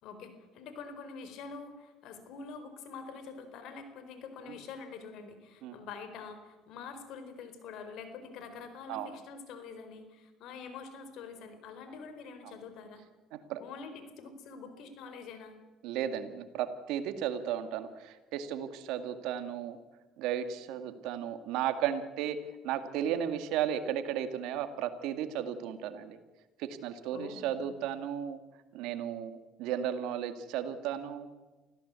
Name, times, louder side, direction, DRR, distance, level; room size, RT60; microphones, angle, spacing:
voice 1, 0.0-13.0 13.6-15.6 27.1-27.8, left 5 dB, 70° left, 9 dB, 4.3 m, -46 dB
voice 2, 15.8-19.8 20.2-22.4 22.6-26.2 26.6-28.4 28.7-31.3, right 9 dB, 75° right, 10 dB, 2.0 m, -34 dB
25.5 x 16.0 x 8.3 m, 1.2 s
supercardioid pair, 95°, 0 cm